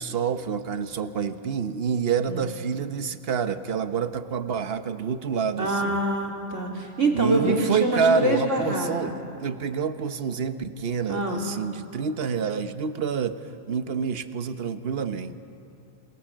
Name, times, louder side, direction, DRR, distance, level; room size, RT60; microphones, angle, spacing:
voice 1, 0.0-6.0 7.1-13.4 13.7-15.3, right 6 dB, 55° right, 10 dB, 1.2 m, -27 dB
voice 2, 5.6-9.1 11.1-11.4, right 1 dB, 85° right, 0 dB, 3.5 m, -25 dB
27.5 x 26.0 x 7.5 m, 2.7 s
omnidirectional pair, 1.2 m